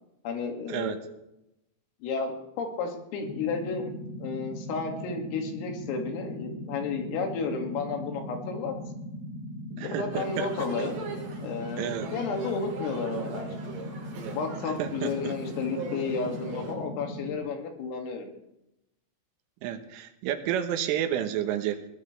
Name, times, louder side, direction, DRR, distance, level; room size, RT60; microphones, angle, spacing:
voice 1, 0.2-1.0 2.0-3.9 4.2-8.7 9.7-11.0 11.4-13.8 14.4-18.3, left 5 dB, 85° left, 3 dB, 4.9 m, -32 dB
sound 1, 3.2-17.4, equal, 50° left, 1.8 m, -39 dB
voice 2, 9.8-10.7 11.8-12.1 14.8-15.3 19.6-21.9, right 10 dB, 80° right, 7 dB, 3.6 m, -30 dB
sound 2, 10.1-16.7, right 4 dB, 60° right, 4.8 m, -40 dB
21.5 x 18.5 x 3.4 m, 0.87 s
omnidirectional pair, 5.9 m